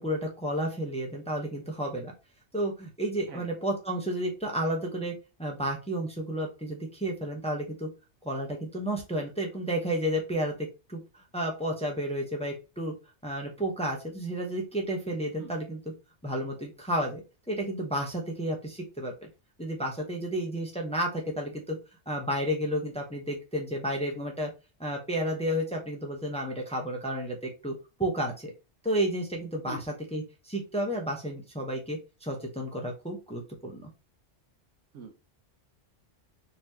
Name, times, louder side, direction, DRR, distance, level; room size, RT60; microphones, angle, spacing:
voice 1, 0.0-2.1 2.5-5.1 5.4-7.9 8.2-12.9 13.2-15.8 16.2-17.2 17.5-19.3 19.6-21.8 22.1-24.5 24.8-27.7 28.0-28.5 28.8-29.8 30.1-33.9, right 1 dB, 5° left, 1 dB, 0.7 m, -31 dB
voice 2, 3.3-3.5 15.4-15.5 29.7-29.8 34.9-35.1, right 4 dB, 85° right, 6 dB, 1.1 m, -42 dB
4.0 x 3.0 x 2.7 m, 0.29 s
omnidirectional pair, 1.2 m